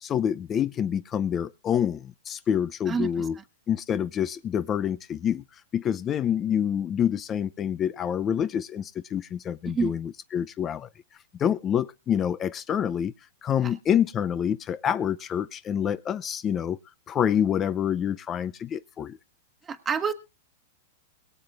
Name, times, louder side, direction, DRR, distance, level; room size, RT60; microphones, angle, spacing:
voice 1, 0.0-3.4 3.7-5.4 5.7-10.9 11.4-13.1 13.4-16.8 17.1-19.2, left 9 dB, 25° left, 0.7 m, -27 dB
voice 2, 2.9-3.4 9.6-9.9 13.6-13.8 19.6-20.1, right 5 dB, 20° right, 1.4 m, -29 dB
22.5 x 7.7 x 3.6 m
hypercardioid pair, 140°, 0 cm